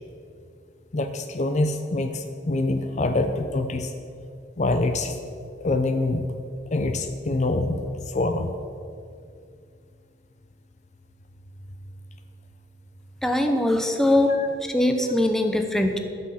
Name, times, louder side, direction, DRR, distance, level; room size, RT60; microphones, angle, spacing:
voice 1, 0.9-3.9 4.6-5.2 5.6-6.3 6.7-8.5 13.9-14.0 14.3-14.5, left 2 dB, 40° left, 7 dB, 0.5 m, -25 dB
voice 2, 13.2-14.3 14.6-16.0, left 1 dB, ahead, 5 dB, 0.8 m, -21 dB
11.5 x 6.2 x 7.5 m, 2.4 s
head